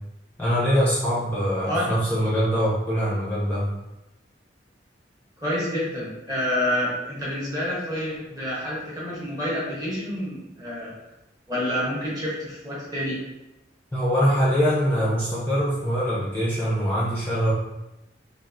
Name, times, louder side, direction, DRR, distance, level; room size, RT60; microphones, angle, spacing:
voice 1, 0.4-3.7 13.9-17.5, equal, 10° left, -8 dB, 0.5 m, -23 dB
voice 2, 5.4-10.9 11.5-13.2, left 1 dB, 20° right, -6 dB, 0.9 m, -28 dB
3.4 x 2.3 x 2.4 m, 0.93 s
head